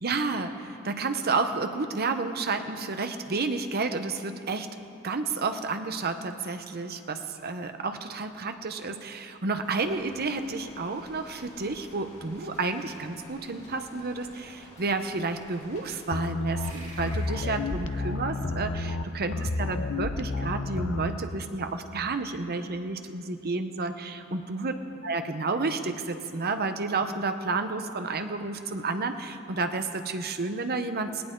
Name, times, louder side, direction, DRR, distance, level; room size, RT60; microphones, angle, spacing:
voice 1, 0.0-4.7 5.0-24.7 25.0-31.2, right 3 dB, 45° right, 8 dB, 0.8 m, -31 dB
sound 1, 9.6-16.2, left 1 dB, 30° left, 3.1 m, -51 dB
sound 2, 16.1-21.2, left 3 dB, 55° left, 0.7 m, -31 dB
sound 3, 16.6-19.6, right 1 dB, 75° right, 4.6 m, -50 dB
20.0 x 18.0 x 3.8 m, 2.8 s
head